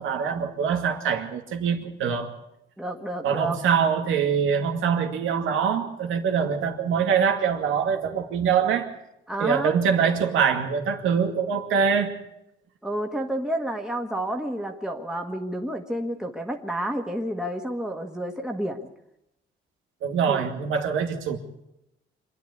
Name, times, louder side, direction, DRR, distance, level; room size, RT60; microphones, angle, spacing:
voice 1, 0.0-2.3 3.2-8.9 9.4-12.1 20.0-21.4, right 7 dB, 85° right, 4 dB, 2.4 m, -24 dB
voice 2, 2.8-3.6 9.3-9.7 12.8-18.9 20.3-20.4, right 1 dB, 5° right, 2 dB, 1.8 m, -30 dB
26.0 x 10.5 x 9.7 m, 0.85 s
cardioid pair, 90°, 20 cm